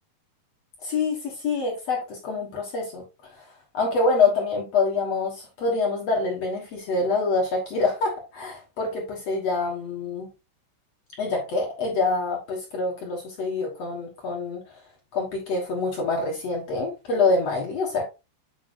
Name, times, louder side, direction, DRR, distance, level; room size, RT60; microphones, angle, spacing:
voice 1, 0.8-3.0 3.4-3.5 3.7-10.3 11.2-14.6 15.1-18.0, left 3 dB, 60° left, -2 dB, 1.7 m, -26 dB
8.2 x 5.7 x 2.6 m, 0.27 s
omnidirectional pair, 4.9 m